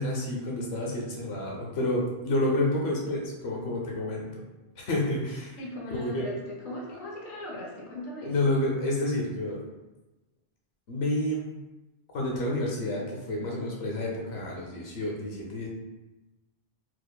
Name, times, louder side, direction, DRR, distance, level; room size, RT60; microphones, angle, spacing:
voice 1, 0.0-4.3 4.7-5.6 5.9-6.3 8.2-9.6 10.9-11.5 12.1-15.7, left 1 dB, 90° left, -2 dB, 1.0 m, -29 dB
voice 2, 5.6-8.3, left 1 dB, 55° left, -4 dB, 1.0 m, -38 dB
4.6 x 2.4 x 2.2 m, 1.1 s
omnidirectional pair, 1.0 m